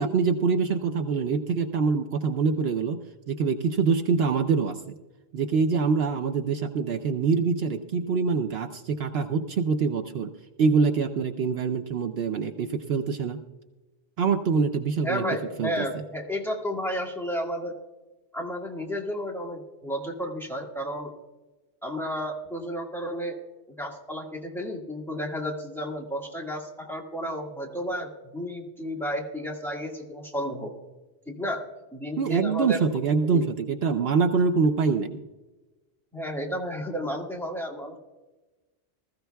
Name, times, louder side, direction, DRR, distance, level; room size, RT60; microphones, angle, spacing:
voice 1, 0.0-3.0 3.3-5.0 5.3-10.3 10.6-13.4 14.2-15.2 15.6-15.8 32.2-35.2, right 5 dB, 65° right, 8 dB, 0.8 m, -25 dB
voice 2, 15.0-17.8 18.3-21.1 21.8-23.4 23.7-30.7 31.3-31.6 31.9-32.9 33.2-33.5 36.1-38.0, equal, ahead, -1 dB, 1.7 m, -32 dB
20.0 x 14.5 x 2.3 m, 1.2 s
omnidirectional pair, 1.1 m